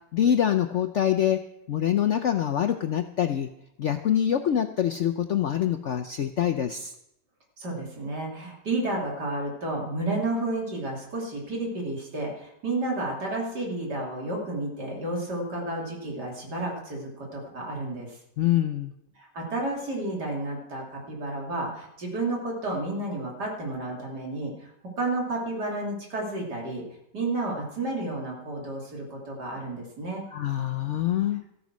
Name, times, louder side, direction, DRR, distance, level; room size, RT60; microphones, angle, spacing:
voice 1, 0.1-3.5 3.8-6.9 18.4-18.9 30.3-31.4, left 10 dB, 65° left, 8 dB, 0.7 m, -25 dB
voice 2, 7.6-18.2 19.2-24.7 25.0-26.8 27.1-30.2, right 2 dB, 65° right, -1 dB, 3.6 m, -31 dB
14.0 x 9.4 x 6.1 m, 0.79 s
omnidirectional pair, 1.9 m